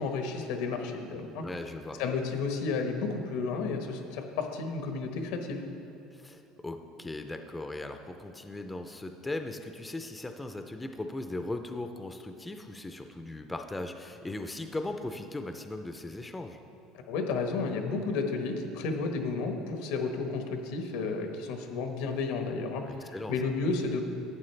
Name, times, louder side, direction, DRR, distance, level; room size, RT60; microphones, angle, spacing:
voice 1, 0.0-1.4 2.0-5.6 17.1-24.0, left 4 dB, 85° left, 4 dB, 1.1 m, -32 dB
voice 2, 1.4-2.0 6.1-16.6 22.8-23.3, left 2 dB, 10° left, 6 dB, 0.4 m, -38 dB
11.5 x 8.6 x 3.3 m, 2.9 s
cardioid pair, 135°, 0 cm